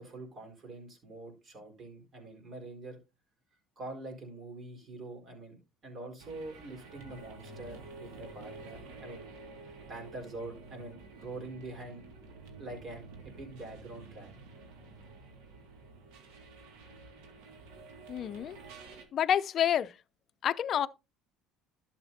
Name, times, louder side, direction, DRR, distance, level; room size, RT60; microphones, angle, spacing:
voice 1, 0.0-3.0 3.8-9.2 9.6-12.1 12.6-13.1 13.4-14.3, right 2 dB, 45° right, 4.4 m, -45 dB
sound 1, 6.2-19.0, right 3 dB, 80° right, 2.1 m, -50 dB
voice 2, 18.1-18.6 19.1-19.9 20.4-20.9, left 9 dB, 50° left, 0.5 m, -28 dB
12.0 x 7.3 x 2.7 m
supercardioid pair, 95°, 0 cm